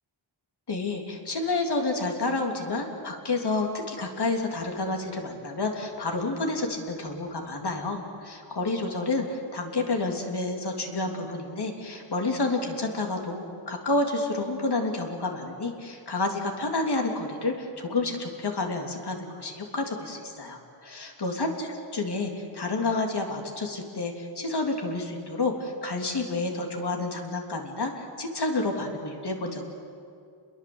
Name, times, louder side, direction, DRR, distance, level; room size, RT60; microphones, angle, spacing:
voice 1, 0.7-29.6, left 2 dB, 55° left, 2 dB, 3.4 m, -29 dB
29.5 x 21.5 x 8.1 m, 2.3 s
wide cardioid pair, 145°, 48 cm